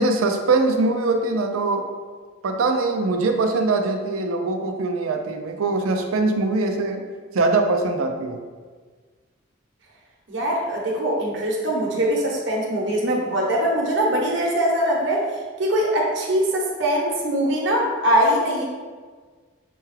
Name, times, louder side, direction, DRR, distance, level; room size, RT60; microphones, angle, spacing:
voice 1, 0.0-1.9 2.4-7.1 7.3-8.4, right 3 dB, 90° right, 5 dB, 0.5 m, -22 dB
voice 2, 10.3-15.3 15.6-18.6, equal, 60° right, -2 dB, 0.7 m, -22 dB
5.7 x 2.2 x 3.2 m, 1.5 s
head